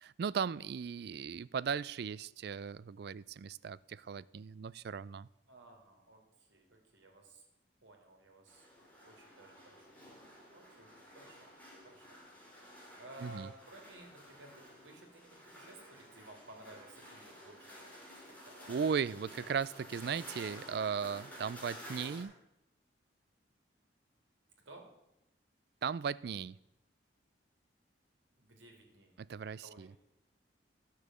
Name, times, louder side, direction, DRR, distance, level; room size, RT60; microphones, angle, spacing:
voice 1, 0.0-5.3 13.2-13.5 18.7-22.3 25.8-26.6 29.3-29.9, right 6 dB, 55° right, 0.3 m, -37 dB
voice 2, 5.5-7.4 7.8-11.5 11.8-12.2 13.0-17.9 18.3-18.7 24.6-24.8 28.4-29.1 29.4-30.0, right 1 dB, 85° right, 2.9 m, -56 dB
sound 1, 8.5-22.2, equal, 10° left, 2.8 m, -52 dB
12.5 x 6.6 x 7.5 m
head